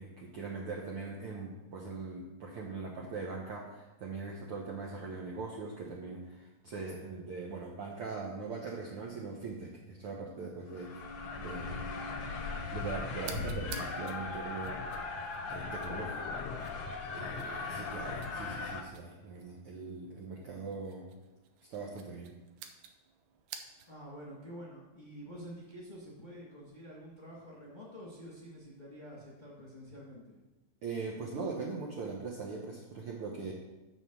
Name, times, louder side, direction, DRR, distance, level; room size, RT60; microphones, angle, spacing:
voice 1, 0.0-10.9 11.4-11.8 12.7-14.9 15.5-16.4 17.1-21.1 21.7-22.3 30.8-33.5, right 4 dB, 65° right, -2 dB, 1.5 m, -41 dB
sound 1, 10.7-18.8, left 3 dB, 65° left, 1.4 m, -38 dB
sound 2, 13.2-24.1, right 8 dB, 85° right, 2.3 m, -53 dB
Thunder, 13.7-18.4, left 8 dB, 80° left, 2.0 m, -49 dB
voice 2, 23.9-30.4, equal, 20° left, -5 dB, 1.3 m, -48 dB
7.2 x 6.6 x 6.1 m, 1.0 s
omnidirectional pair, 3.6 m